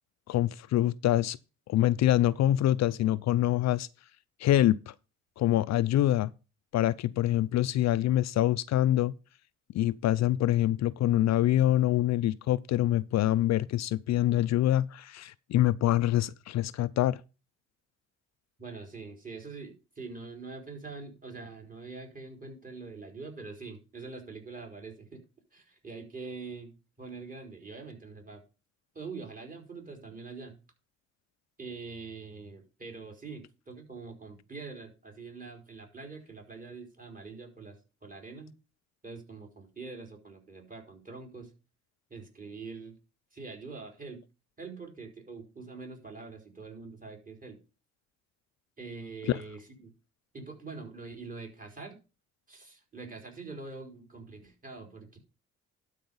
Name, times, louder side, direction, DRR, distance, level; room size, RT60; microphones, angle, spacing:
voice 1, 0.3-1.4 1.7-3.9 4.4-4.9 5.4-6.3 6.7-9.1 9.7-17.2 49.3-49.4, left 13 dB, 65° left, 0.5 m, -25 dB
voice 2, 18.6-25.2 25.5-28.4 28.9-30.6 31.6-37.8 38.0-38.5 39.0-41.5 42.1-43.0 43.3-44.2 44.6-47.6 48.8-49.9 50.3-52.0 52.5-55.2, right 4 dB, 30° right, 4.1 m, -44 dB
12.0 x 4.9 x 5.4 m
cardioid pair, 90°, 30 cm